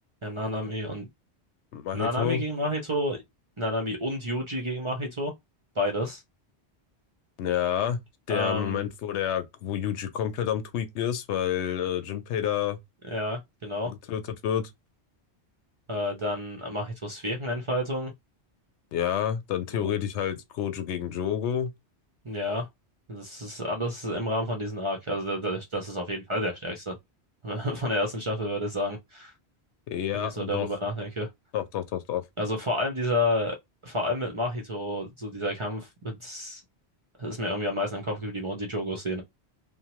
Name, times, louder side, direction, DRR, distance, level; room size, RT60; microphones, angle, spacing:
voice 1, 0.2-1.1 1.9-3.2 3.6-5.3 5.8-6.2 8.3-8.9 13.0-13.9 15.9-18.1 19.7-20.0 22.2-22.7 23.1-26.9 27.4-29.3 30.1-31.3 32.4-33.6 33.8-36.6 37.2-39.2, left 1 dB, 35° right, 0.5 m, -30 dB
voice 2, 1.7-2.4 7.4-8.0 8.3-12.8 13.8-14.7 18.9-21.7 29.9-30.7 31.5-32.2, left 9 dB, 85° left, 0.9 m, -29 dB
2.9 x 2.1 x 2.9 m
omnidirectional pair, 1.1 m